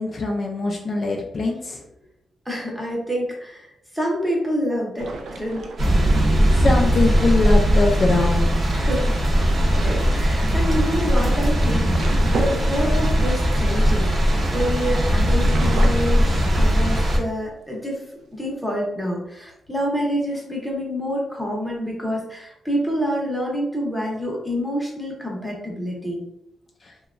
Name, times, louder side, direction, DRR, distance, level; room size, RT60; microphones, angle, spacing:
voice 1, 0.0-1.8 6.5-8.8, left 3 dB, 40° left, 0 dB, 0.3 m, -22 dB
voice 2, 2.5-5.7 8.7-9.2 9.8-18.0 18.3-26.2, equal, 5° right, -3 dB, 0.8 m, -27 dB
sound 1, 5.0-6.6 9.5-9.8 10.8-14.6 15.1-17.2 17.7-17.8 18.2-18.7, right 3 dB, 75° right, 0.3 m, -34 dB
sound 2, 5.8-17.2, equal, 40° right, 0.6 m, -19 dB
2.9 x 2.2 x 2.4 m, 0.78 s
wide cardioid pair, 130°, 0 cm